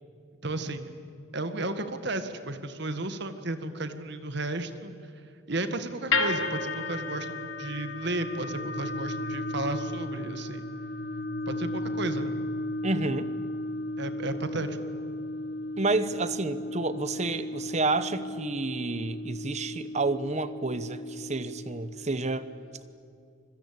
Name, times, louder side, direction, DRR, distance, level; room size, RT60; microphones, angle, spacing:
voice 1, 0.4-0.9 1.3-4.9 5.5-10.6 11.5-12.3 14.0-14.8, right 2 dB, 55° right, 9 dB, 1.8 m, -33 dB
sound 1, 6.1-22.3, left 2 dB, 75° left, 2.1 m, -34 dB
voice 2, 12.8-13.3 15.8-22.5, right 3 dB, 35° right, 13 dB, 1.0 m, -30 dB
26.0 x 22.0 x 8.6 m, 2.4 s
head